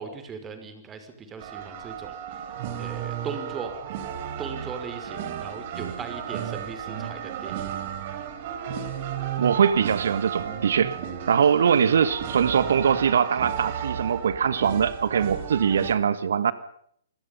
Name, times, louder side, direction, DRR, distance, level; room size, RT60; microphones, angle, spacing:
voice 1, 0.0-2.2 2.7-3.7 4.4-7.7, right 5 dB, 20° right, 5.7 m, -38 dB
sound 1, 1.4-16.0, right 9 dB, 45° right, 4.2 m, -34 dB
voice 2, 9.4-11.0 11.3-16.5, right 7 dB, 65° right, 1.6 m, -22 dB
30.0 x 21.5 x 5.5 m
figure-of-eight pair, 120°, 0 cm